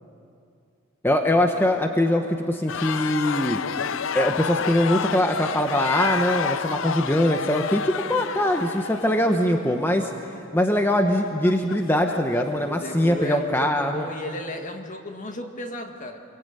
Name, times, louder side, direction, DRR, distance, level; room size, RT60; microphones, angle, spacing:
voice 1, 1.0-3.6 4.1-10.1 10.5-14.1, left 1 dB, 10° left, 4 dB, 1.1 m, -22 dB
sound 1, 2.7-12.6, left 6 dB, 65° left, 0.6 m, -30 dB
voice 2, 12.6-16.2, left 1 dB, 40° left, 4 dB, 2.2 m, -34 dB
27.0 x 23.0 x 9.2 m, 2.5 s
head